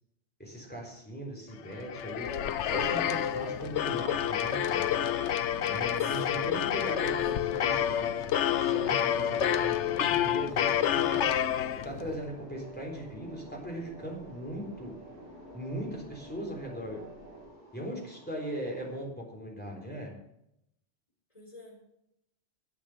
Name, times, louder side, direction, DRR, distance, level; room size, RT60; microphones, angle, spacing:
voice 1, 0.4-2.3 2.7-4.8 5.6-8.2 8.6-9.8 10.1-11.3 11.8-14.9 15.5-17.0 17.7-20.1, right 1 dB, 10° left, -1 dB, 3.8 m, -39 dB
sound 1, 1.7-12.2, left 10 dB, 90° left, 1.0 m, -28 dB
sound 2, 2.1-17.5, equal, 15° right, 5.4 m, -50 dB
voice 2, 6.0-7.3 21.3-21.8, left 1 dB, 30° left, -2 dB, 4.6 m, -53 dB
sound 3, 10.8-19.0, right 1 dB, 40° right, 4.4 m, -56 dB
11.5 x 8.5 x 6.5 m, 0.80 s
omnidirectional pair, 1.2 m